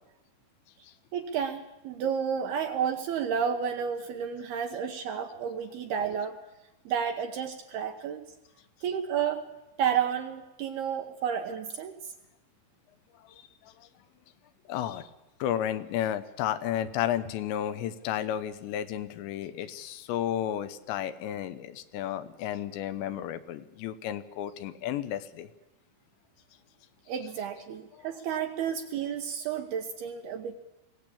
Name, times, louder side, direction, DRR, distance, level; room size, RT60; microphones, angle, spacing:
voice 1, 1.1-6.4 6.9-8.3 8.8-9.4 9.8-12.1 27.1-30.6, right 7 dB, 75° right, 5 dB, 2.4 m, -31 dB
voice 2, 13.3-13.7 14.7-15.1 15.4-25.5 28.0-28.1, left 11 dB, 75° left, 11 dB, 2.9 m, -32 dB
23.0 x 17.0 x 8.6 m, 0.97 s
omnidirectional pair, 5.7 m